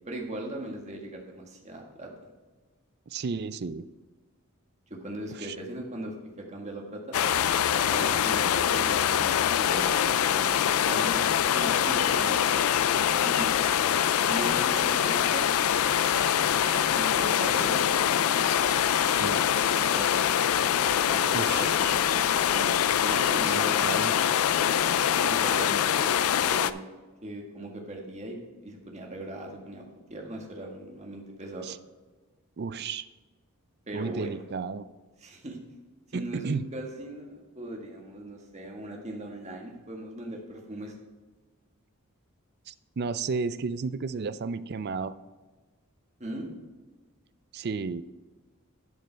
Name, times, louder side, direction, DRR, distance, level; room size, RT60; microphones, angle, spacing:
voice 1, 0.1-2.1 4.9-7.1 7.9-11.2 11.5-12.4 13.2-13.5 14.2-15.4 16.9-17.8 19.5-20.3 21.0-22.7 23.0-23.9 25.1-26.8 27.2-28.4 28.6-29.8 30.1-31.7 33.9-34.4 35.2-35.6 36.1-40.9 46.2-46.5, right 1 dB, 30° right, 1 dB, 1.6 m, -39 dB
voice 2, 3.1-3.9 5.3-5.6 19.1-19.4 21.3-21.7 23.5-24.1 31.6-31.8 32.6-33.1 33.9-34.9 36.1-36.6 42.7-45.1 47.5-48.0, right 4 dB, 50° right, 15 dB, 0.4 m, -33 dB
sound 1, 7.1-26.7, left 9 dB, 75° left, 0.4 m, -24 dB
12.0 x 5.3 x 4.6 m, 1.3 s
head